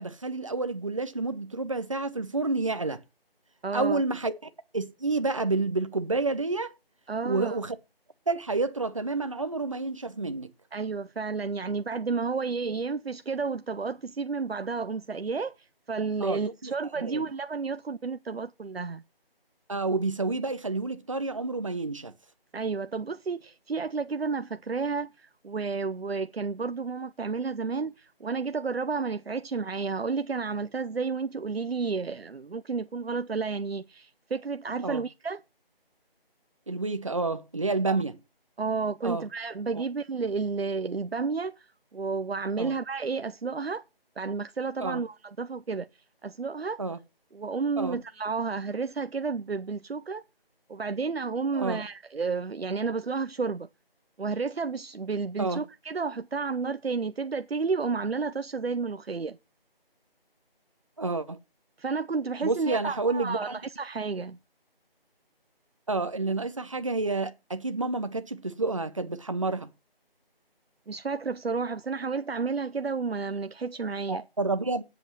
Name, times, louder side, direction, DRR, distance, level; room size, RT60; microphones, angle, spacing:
voice 1, 0.0-3.0 3.7-4.3 4.7-6.7 7.2-7.8 8.3-10.5 16.2-17.2 19.7-22.1 34.8-35.0 36.7-38.2 39.0-39.3 39.7-39.8 42.6-42.7 44.8-45.0 46.8-47.0 47.8-48.0 51.5-51.8 55.4-55.6 61.0-61.4 62.4-63.6 65.9-69.7 74.1-74.8, right 3 dB, 35° right, 0.8 m, -29 dB
voice 2, 3.6-4.0 7.1-7.6 10.7-15.5 15.9-19.0 22.5-35.4 37.9-38.0 38.6-43.8 44.2-45.9 46.2-46.8 47.3-50.2 50.7-53.7 54.2-59.4 61.8-64.4 70.9-74.2, right 4 dB, 90° right, 0.8 m, -31 dB
8.5 x 8.0 x 6.8 m
figure-of-eight pair, 170°, 30 cm